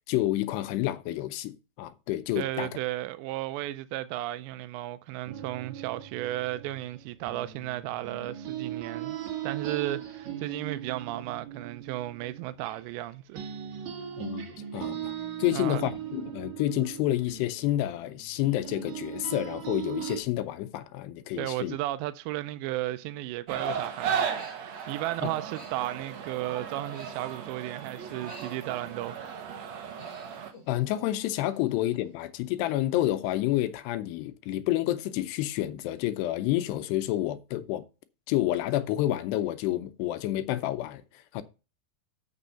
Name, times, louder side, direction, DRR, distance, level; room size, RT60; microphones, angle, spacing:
voice 1, 0.0-2.7 14.2-21.8 25.2-25.3 30.7-37.9 38.3-41.4, left 14 dB, 80° left, 2.6 m, -29 dB
voice 2, 2.4-9.2 9.4-13.4 15.5-15.8 21.4-29.2, right 15 dB, 90° right, 2.8 m, -34 dB
sound 1, 5.3-13.1 13.3-20.2, right 10 dB, 55° right, 2.2 m, -39 dB
sound 2, 23.5-30.5, right 7 dB, 70° right, 1.6 m, -35 dB
Human voice, 24.1-25.0 25.3-27.7 28.0-29.3 29.6-31.4 31.7-32.1, equal, 25° right, 3.1 m, -51 dB
7.6 x 6.1 x 5.5 m
omnidirectional pair, 4.9 m